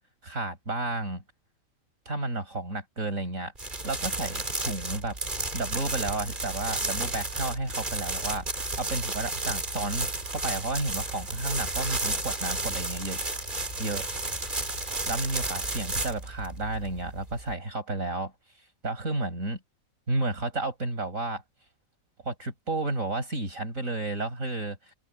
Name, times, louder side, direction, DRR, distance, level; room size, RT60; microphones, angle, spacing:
voice 1, 0.2-1.2 2.1-3.5 3.8-5.2 5.5-13.2 13.8-14.1 15.1-18.3 18.8-19.6 20.1-21.4 22.3-24.8, right 2 dB, 70° right, 5.9 m, -32 dB
sound 1, 3.6-17.5, right 2 dB, 35° right, 3.0 m, -32 dB
sound 2, 5.3-15.3, left 2 dB, 65° left, 5.5 m, -49 dB
omnidirectional pair, 1.4 m